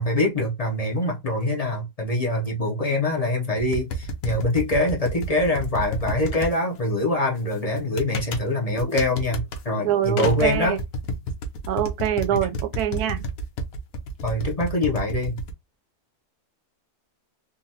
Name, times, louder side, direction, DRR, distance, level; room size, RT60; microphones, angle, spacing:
voice 1, 0.0-10.8 14.2-15.4, left 1 dB, 45° left, 0.4 m, -24 dB
sound 1, 3.6-6.5 7.8-8.4 8.8-9.6 10.0-15.5, right 1 dB, 65° left, 1.1 m, -30 dB
sound 2, 6.2-7.7 8.8-8.9 9.1-9.2 10.2-10.8, left 4 dB, 85° left, 1.5 m, -35 dB
voice 2, 9.8-10.8 11.7-13.2, right 10 dB, 75° right, 1.1 m, -24 dB
3.8 x 2.2 x 2.7 m
omnidirectional pair, 1.7 m